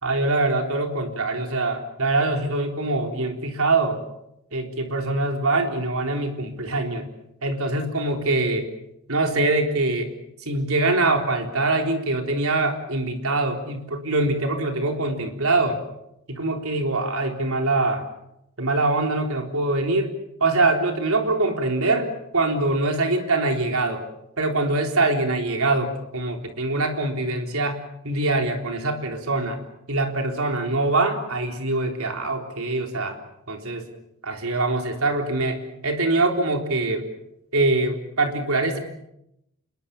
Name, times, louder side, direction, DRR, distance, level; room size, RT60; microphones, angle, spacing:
voice 1, 0.0-4.0 4.5-7.1 7.4-8.7 9.1-10.1 10.4-15.8 16.3-18.0 18.6-20.1 20.4-22.1 22.3-24.0 24.4-29.6 29.9-33.2 33.5-33.9 34.2-37.0 37.5-38.8, right 2 dB, 75° right, 4 dB, 3.9 m, -23 dB
27.0 x 22.0 x 7.2 m, 0.82 s
head